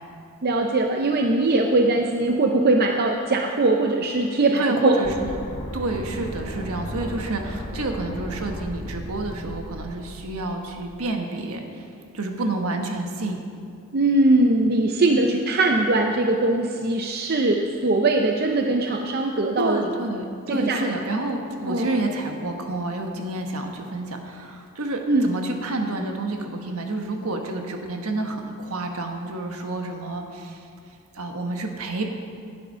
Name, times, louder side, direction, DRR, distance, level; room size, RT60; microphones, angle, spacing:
voice 1, 0.4-5.0 13.9-19.8 20.5-21.0 21.6-22.0 25.1-25.3, right 2 dB, 45° right, 3 dB, 0.6 m, -21 dB
voice 2, 4.6-5.4 5.7-11.8 12.1-13.4 19.6-30.6 31.1-32.1, right 2 dB, 75° right, 3 dB, 1.3 m, -29 dB
sound 1, 5.0-11.0, equal, 25° left, 1.2 m, -35 dB
11.0 x 10.0 x 5.6 m, 2.4 s
head